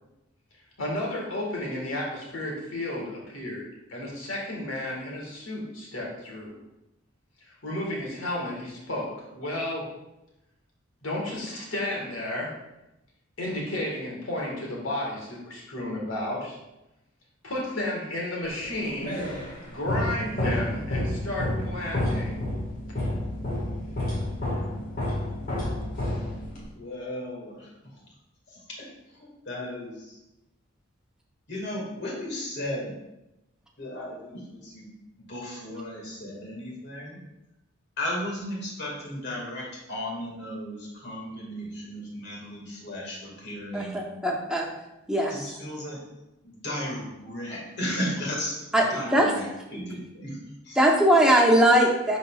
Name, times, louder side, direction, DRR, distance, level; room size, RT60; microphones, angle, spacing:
voice 1, 0.8-6.6 7.4-9.8 11.0-12.5 13.4-16.6 17.4-19.2 19.7-22.4, left 1 dB, 90° left, -3 dB, 1.8 m, -32 dB
sound 1, 18.6-26.7, left 1 dB, 40° left, 1.7 m, -30 dB
voice 2, 26.7-28.1 28.5-30.2 31.5-32.9 33.8-34.9 35.2-37.2 38.0-44.0 45.3-46.0 46.4-50.4 50.6-50.8, left 1 dB, 55° left, -3 dB, 2.0 m, -35 dB
voice 3, 43.7-44.7 45.1-45.3 48.7-49.3 50.8-52.2, right 1 dB, 5° right, -2 dB, 0.8 m, -20 dB
10.5 x 4.1 x 2.4 m, 0.93 s
head